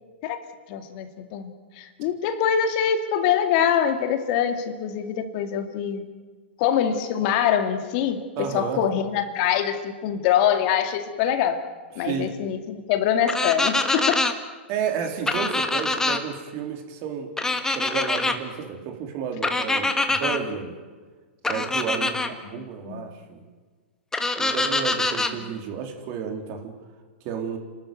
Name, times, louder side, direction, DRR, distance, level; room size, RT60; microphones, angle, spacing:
voice 1, 0.7-6.0 6.6-11.6 12.0-14.3 22.5-23.2 25.4-25.5, left 9 dB, 50° left, 7 dB, 2.3 m, -24 dB
voice 2, 8.4-8.8 12.0-12.3 14.7-20.8 21.5-23.4 24.4-26.7 27.2-27.6, right 7 dB, 45° right, 4 dB, 4.0 m, -31 dB
sound 1, 13.3-14.3 15.3-16.2 17.4-18.4 19.4-20.4 21.4-22.3 24.1-25.3, left 2 dB, 10° left, 1.7 m, -24 dB
29.5 x 13.0 x 9.3 m, 1.4 s
hypercardioid pair, 120°, 6 cm